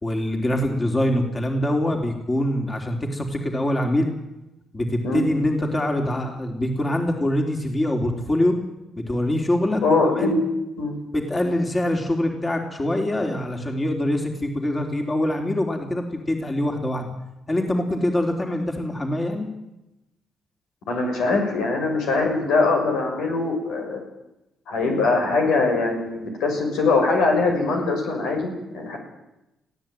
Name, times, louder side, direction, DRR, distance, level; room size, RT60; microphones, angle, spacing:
voice 1, 0.0-4.1 4.7-8.6 9.0-10.4 11.1-17.1 17.5-19.5, left 1 dB, 25° left, 3 dB, 3.7 m, -24 dB
voice 2, 9.8-10.4 10.8-10.9 20.9-24.0 24.7-29.0, left 3 dB, 90° left, 2 dB, 6.3 m, -22 dB
21.5 x 15.5 x 9.3 m, 0.94 s
cardioid pair, 90°, 0 cm